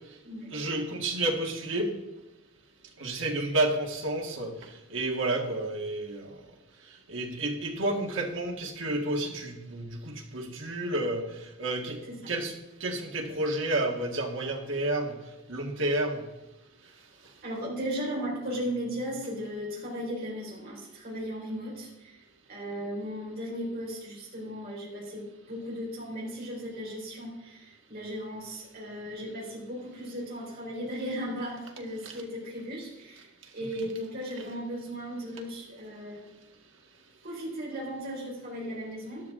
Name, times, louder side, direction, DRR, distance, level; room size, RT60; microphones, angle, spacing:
voice 1, 0.5-2.0 3.0-6.3 7.1-12.0 12.3-12.5 12.8-15.2 15.5-16.2 32.0-32.1, right 2 dB, 65° right, 2 dB, 1.9 m, -30 dB
voice 2, 17.4-22.2 22.5-33.3 33.5-36.2 37.2-39.2, equal, 45° right, -4 dB, 4.6 m, -36 dB
13.0 x 11.5 x 3.8 m, 0.98 s
head